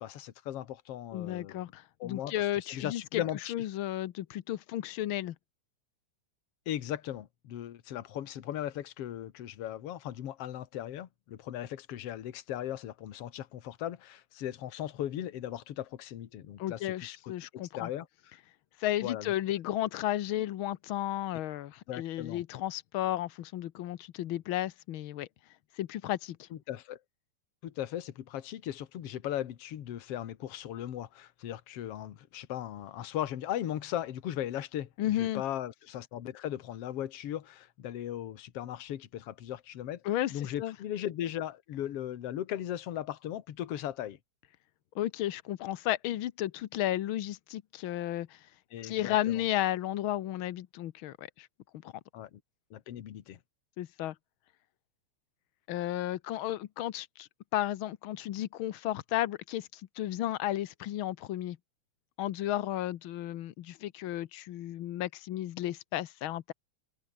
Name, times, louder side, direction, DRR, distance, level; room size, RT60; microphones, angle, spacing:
voice 1, 0.0-1.7 2.0-3.5 6.7-18.1 19.0-19.3 21.9-22.4 26.5-27.0 27.6-40.0 40.3-44.2 48.7-49.4 52.1-52.4 52.7-53.4, left 11 dB, 55° left, 2.2 m, -38 dB
voice 2, 1.1-3.2 3.5-5.3 16.6-17.9 18.8-25.3 25.8-26.5 35.0-35.4 40.0-40.7 44.9-48.4 48.8-51.5 51.8-51.9 53.8-54.1 55.7-61.6 62.2-66.5, left 13 dB, 80° left, 1.1 m, -33 dB
omnidirectional pair, 3.5 m